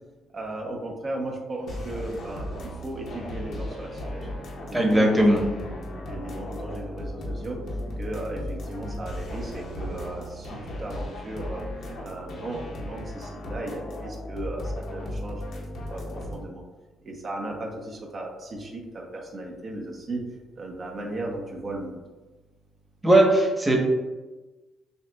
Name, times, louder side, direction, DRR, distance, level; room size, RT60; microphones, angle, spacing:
voice 1, 0.3-2.5 2.8-4.5 4.9-5.2 5.7-7.6 8.0-11.6 12.0-15.6 15.9-16.0 16.3-16.6 17.0-20.2 20.6-22.0, right 2 dB, 45° right, 0 dB, 0.7 m, -36 dB
sound 1, 1.7-16.4, left 1 dB, 70° left, 0.9 m, -36 dB
voice 2, 4.7-5.4 23.0-23.8, right 1 dB, 15° right, -1 dB, 1.0 m, -18 dB
6.5 x 2.4 x 2.3 m, 1.2 s
cardioid pair, 90°, 0 cm